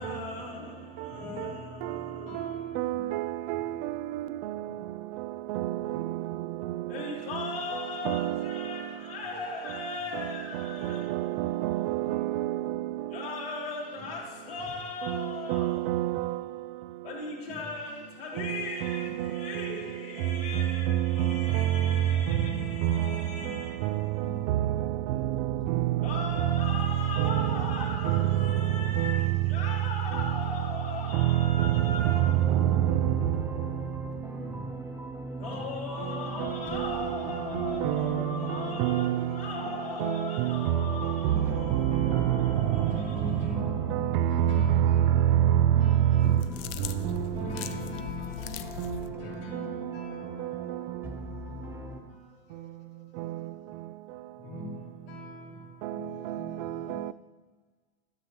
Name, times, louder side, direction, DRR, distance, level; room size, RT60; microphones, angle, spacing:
voice 1, 0.0-3.2 4.6-4.9 5.7-6.0 6.9-11.3 12.0-12.2 13.1-15.9 17.0-32.5 33.5-34.9 35.4-50.9 51.2-51.4 51.7-52.8 54.3-57.1, left 3 dB, 80° left, 2.8 m, -39 dB
voice 2, 2.8-3.2 3.5-3.6 5.5-5.6 8.1-8.3 11.1-12.5 15.5-16.2 21.2-21.3 37.8-38.2 38.8-39.2 41.9-42.4 44.4-44.5, right 14 dB, 55° right, 0.4 m, -27 dB
sound 1, 32.1-52.0, equal, 5° right, 1.0 m, -41 dB
sound 2, 46.2-49.1, left 9 dB, 55° left, 0.6 m, -40 dB
voice 3, 52.1-53.7 56.1-56.9, left 2 dB, 35° left, 0.9 m, -63 dB
12.5 x 7.3 x 2.9 m
hypercardioid pair, 100°, 29 cm